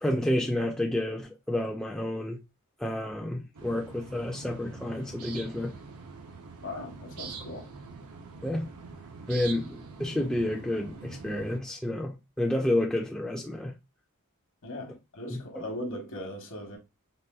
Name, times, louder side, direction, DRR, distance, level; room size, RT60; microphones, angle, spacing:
voice 1, 0.0-2.4 2.8-5.7 8.4-8.7 9.3-13.7 15.3-15.6, left 1 dB, 5° left, 0.3 m, -30 dB
sound 1, 3.5-11.6, right 4 dB, 80° right, 0.6 m, -44 dB
voice 2, 6.6-7.7 14.6-16.8, left 1 dB, 60° left, 1.0 m, -39 dB
4.0 x 2.2 x 2.2 m
head